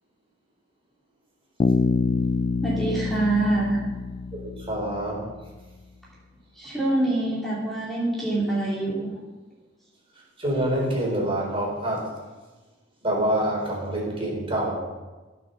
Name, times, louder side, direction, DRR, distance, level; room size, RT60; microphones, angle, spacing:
Bass guitar, 1.6-5.3, left 4 dB, 30° left, 0.3 m, -26 dB
voice 1, 2.6-3.8 6.6-9.2, right 2 dB, ahead, -7 dB, 2.9 m, -25 dB
voice 2, 4.3-5.2 10.4-12.1 13.0-14.8, right 1 dB, 30° right, -2 dB, 4.3 m, -26 dB
15.5 x 7.0 x 6.7 m, 1.2 s
head